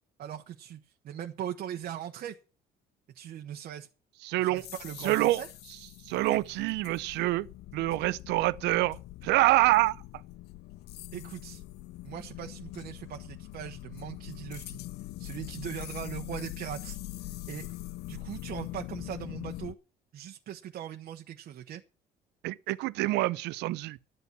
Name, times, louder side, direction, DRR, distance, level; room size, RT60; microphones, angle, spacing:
voice 1, 0.2-2.4 3.1-3.9 4.4-5.5 11.1-11.6 12.0-14.8 15.2-17.0 17.5-17.7 18.1-19.8 20.1-21.8, right 10 dB, 60° right, 1.1 m, -40 dB
voice 2, 4.2-4.6 5.0-5.4 6.1-7.5 7.7-9.0 9.2-10.0 22.4-24.0, right 18 dB, 85° right, 0.6 m, -26 dB
Hyelophobia Soundscape, 4.6-19.7, left 16 dB, 75° left, 0.5 m, -43 dB
12.0 x 8.3 x 5.9 m
cardioid pair, 110°, 17 cm